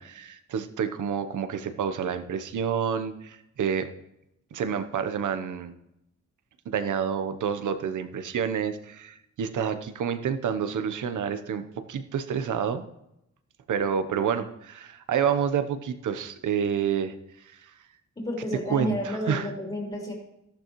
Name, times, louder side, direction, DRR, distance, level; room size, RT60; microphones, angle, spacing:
voice 1, 0.0-3.9 4.5-5.7 6.7-12.8 13.7-17.1 17.6-17.7 18.7-19.5, right 7 dB, 85° right, 10 dB, 0.9 m, -28 dB
voice 2, 18.2-20.1, left 1 dB, 20° left, -1 dB, 2.9 m, -31 dB
13.5 x 11.5 x 3.1 m, 0.83 s
cardioid pair, 80°, 30 cm